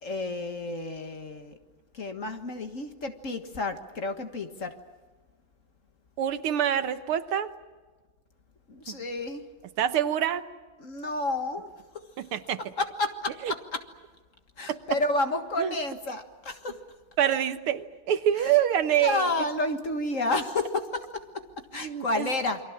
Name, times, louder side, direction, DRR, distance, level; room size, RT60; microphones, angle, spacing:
voice 1, 0.0-1.5 1.9-4.7 8.7-9.4 10.8-11.7 12.8-13.8 14.6-16.7 19.0-21.4 21.7-22.6, left 2 dB, 40° left, 6 dB, 1.8 m, -30 dB
voice 2, 6.2-7.5 8.9-9.0 9.8-10.5 12.2-12.6 13.4-13.5 14.7-14.8 15.6-15.7 17.2-19.5 21.8-22.3, right 10 dB, 85° right, 10 dB, 2.0 m, -26 dB
29.0 x 23.5 x 7.3 m, 1.3 s
omnidirectional pair, 2.3 m